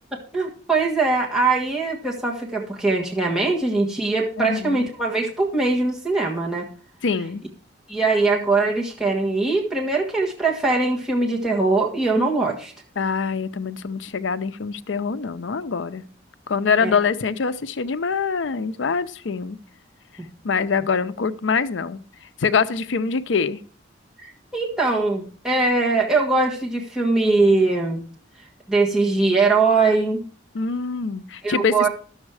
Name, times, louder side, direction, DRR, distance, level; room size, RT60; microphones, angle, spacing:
voice 1, 0.3-6.7 7.9-12.7 16.8-17.0 20.2-20.3 24.2-28.0 28.7-30.2 31.4-31.9, right 3 dB, 5° right, -3 dB, 1.6 m, -21 dB
voice 2, 4.4-4.8 7.0-7.4 13.0-16.0 16.5-19.6 20.4-22.0 22.4-23.6 30.5-31.9, left 5 dB, 80° left, 13 dB, 0.6 m, -24 dB
12.0 x 7.2 x 4.7 m, 0.41 s
head